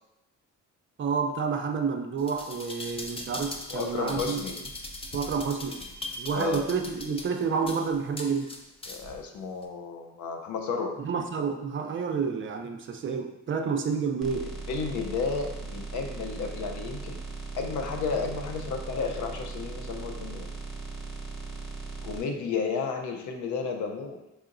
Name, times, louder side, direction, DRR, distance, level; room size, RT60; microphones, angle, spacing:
voice 1, 1.0-4.4 5.1-5.8 6.1-8.5 11.0-14.5, right 5 dB, 40° right, 4 dB, 0.5 m, -29 dB
sound 1, 2.2-9.2 9.6-9.7, left 2 dB, 20° left, 0.5 m, -40 dB
voice 2, 3.7-4.5 6.3-6.7 8.9-11.0 13.6-13.7 14.7-17.2 17.6-20.5 22.0-24.3, left 5 dB, 75° left, 4 dB, 0.6 m, -32 dB
sound 2, 14.2-22.2, right 3 dB, ahead, 1.0 m, -38 dB
4.8 x 2.8 x 2.5 m, 0.93 s
cardioid pair, 90°, 30 cm